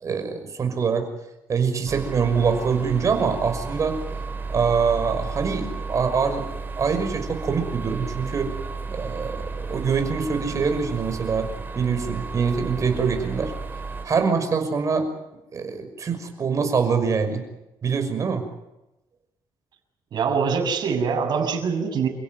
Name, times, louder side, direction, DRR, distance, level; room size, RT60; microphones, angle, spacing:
voice 1, 0.0-1.1 1.5-4.0 4.5-6.5 6.8-8.5 8.9-11.5 11.8-13.5 14.0-15.1 15.5-17.4 17.8-18.4, right 5 dB, 40° right, 6 dB, 6.1 m, -24 dB
sound 1, 1.9-14.1, right 4 dB, 25° right, 5.0 m, -33 dB
voice 2, 20.1-22.1, right 6 dB, 60° right, 3 dB, 7.1 m, -23 dB
29.5 x 16.5 x 9.5 m, 0.94 s
cardioid pair, 120°, 8 cm